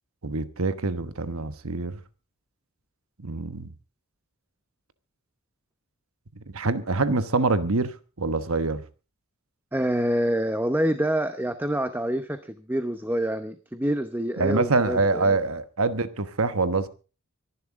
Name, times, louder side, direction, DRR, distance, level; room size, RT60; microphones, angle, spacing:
voice 1, 0.2-2.0 3.2-3.7 6.5-8.8 14.4-16.9, right 3 dB, 70° right, 1.2 m, -25 dB
voice 2, 9.7-15.4, right 1 dB, 10° right, 0.8 m, -27 dB
24.5 x 11.0 x 3.7 m
head